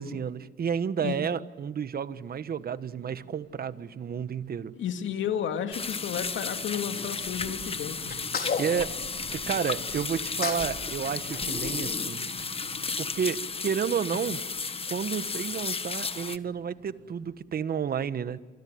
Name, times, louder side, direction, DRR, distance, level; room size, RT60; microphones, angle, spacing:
voice 1, 0.0-4.7 8.6-9.0 9.3-12.2 13.0-14.4 14.9-18.4, right 7 dB, 50° right, 13 dB, 1.4 m, -31 dB
sound 1, 2.1-17.4, right 4 dB, 65° right, 7.9 m, -49 dB
voice 2, 4.8-8.2, left 8 dB, 75° left, 7 dB, 2.4 m, -32 dB
sound 2, 5.7-16.4, left 4 dB, 30° left, 1.3 m, -33 dB
Sneeze, 8.1-9.7 10.1-10.7 11.0-12.5, left 5 dB, 50° left, 4.7 m, -35 dB
29.0 x 24.5 x 8.0 m, 1.4 s
cardioid pair, 90°, 20 cm